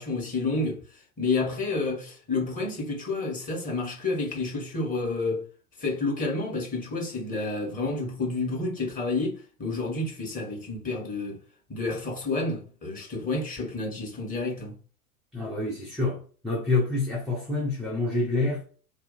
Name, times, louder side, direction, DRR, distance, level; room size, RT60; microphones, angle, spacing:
voice 1, 0.0-5.4 5.8-11.4 11.7-14.8, left 3 dB, 20° left, 1.3 m, -30 dB
voice 2, 15.3-16.2 16.4-18.6, left 3 dB, ahead, 0.5 m, -27 dB
2.7 x 2.3 x 3.9 m
figure-of-eight pair, 90°, 43 cm